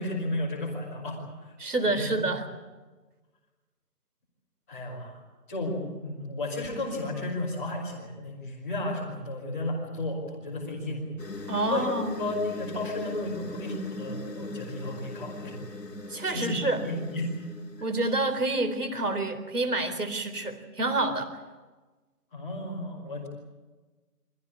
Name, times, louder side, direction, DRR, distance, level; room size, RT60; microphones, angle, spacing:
voice 1, 0.0-1.5 2.0-2.1 4.7-5.2 5.5-11.0 11.3-11.9 12.2-15.5 16.3-17.3 17.8-17.9 22.3-23.3, left 1 dB, 10° left, -10 dB, 2.8 m, -33 dB
voice 2, 1.6-2.5 11.5-12.2 16.1-16.8 17.8-21.3, right 2 dB, 70° right, 8 dB, 4.1 m, -28 dB
sound 1, 11.2-17.8, left 2 dB, 90° left, 3.1 m, -40 dB
24.5 x 16.0 x 9.7 m, 1.3 s
figure-of-eight pair, 175°, 47 cm